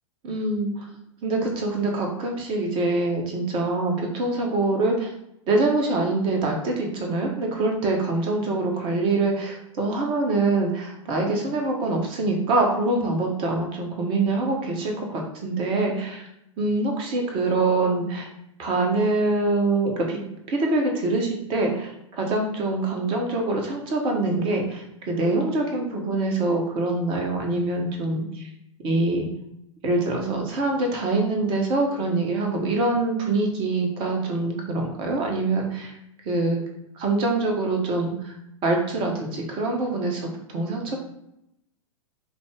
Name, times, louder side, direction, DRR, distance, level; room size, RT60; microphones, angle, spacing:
voice 1, 0.2-0.9 1.2-5.1 5.5-16.2 16.6-18.3 18.6-20.2 20.5-28.5 28.8-29.3 29.8-35.9 36.2-36.6 37.0-38.3 38.6-41.0, right 2 dB, 30° right, 2 dB, 1.0 m, -24 dB
5.2 x 2.1 x 3.4 m, 0.81 s
figure-of-eight pair, 100°, 17 cm